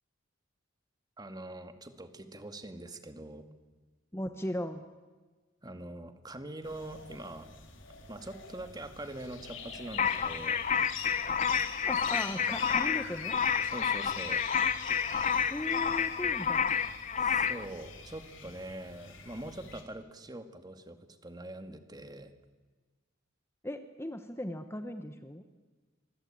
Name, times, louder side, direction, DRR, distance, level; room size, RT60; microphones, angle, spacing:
voice 1, 1.2-3.4 5.6-7.5 8.1-10.6 13.6-14.4 17.2-22.3, right 1 dB, 20° right, 8 dB, 2.0 m, -43 dB
voice 2, 4.1-4.8 11.8-13.4 15.5-16.6 23.6-25.4, left 1 dB, 15° left, 8 dB, 1.1 m, -37 dB
sound 1, 6.6-19.8, left 6 dB, 75° left, 4.0 m, -44 dB
sound 2, 10.0-17.6, left 7 dB, 35° left, 0.8 m, -30 dB
26.5 x 24.0 x 8.8 m, 1.4 s
head